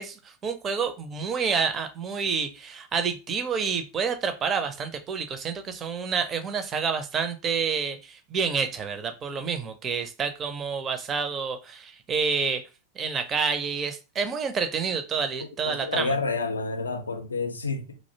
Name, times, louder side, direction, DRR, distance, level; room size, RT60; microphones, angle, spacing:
voice 1, 0.0-12.6 13.0-16.1, right 6 dB, 25° right, 0.4 m, -28 dB
voice 2, 15.7-18.0, left 3 dB, 75° left, 0.4 m, -29 dB
2.5 x 2.0 x 2.7 m
figure-of-eight pair, 90°, 0 cm